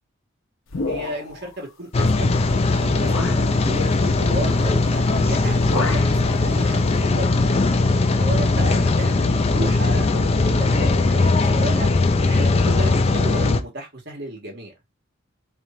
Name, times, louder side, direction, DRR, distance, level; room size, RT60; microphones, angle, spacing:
sound 1, 0.7-1.5 2.4-2.5 3.0-3.5 4.9-5.1 5.4-6.2, left 3 dB, 75° left, 0.8 m, -29 dB
voice 1, 0.8-2.3 2.8-7.4 8.2-11.9 12.2-14.7, right 1 dB, 50° right, 1.4 m, -33 dB
Rain, 1.9-13.6, left 3 dB, 30° left, 0.4 m, -19 dB
3.1 x 2.5 x 4.1 m
head